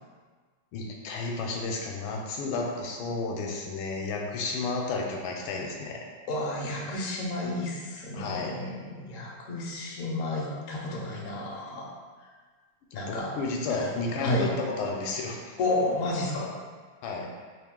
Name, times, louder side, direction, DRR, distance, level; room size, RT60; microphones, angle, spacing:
voice 1, 0.7-6.0 8.1-8.5 12.9-15.6 17.0-17.3, left 3 dB, 80° left, 0 dB, 1.3 m, -32 dB
voice 2, 6.3-11.9 12.9-13.3 13.7-13.9 14.2-14.5 15.6-16.5, left 2 dB, 65° left, -3 dB, 0.8 m, -31 dB
3.3 x 2.6 x 3.6 m, 1.5 s
omnidirectional pair, 2.2 m